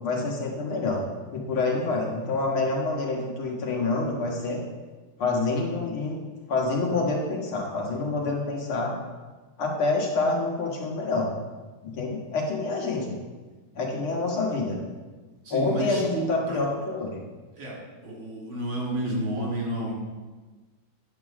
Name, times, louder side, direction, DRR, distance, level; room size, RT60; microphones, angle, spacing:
voice 1, 0.0-1.0 1.3-4.6 5.2-6.2 6.5-8.9 9.6-11.3 11.8-13.2 13.8-14.8 15.5-17.2, left 3 dB, 85° left, -1 dB, 2.4 m, -27 dB
voice 2, 15.4-16.6 17.5-19.9, right 1 dB, 70° right, -4 dB, 3.4 m, -31 dB
10.0 x 4.6 x 6.1 m, 1.3 s
omnidirectional pair, 2.2 m